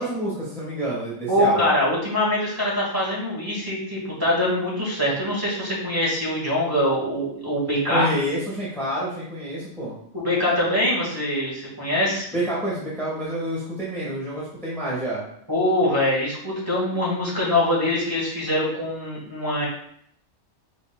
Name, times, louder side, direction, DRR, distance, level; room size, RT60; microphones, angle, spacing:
voice 1, 0.0-1.7 7.8-10.0 12.3-15.2, right 1 dB, ahead, -8 dB, 1.2 m, -28 dB
voice 2, 1.3-8.1 10.1-12.3 15.5-19.7, left 1 dB, 15° right, -6 dB, 1.6 m, -23 dB
5.1 x 4.2 x 2.3 m, 0.67 s
omnidirectional pair, 1.4 m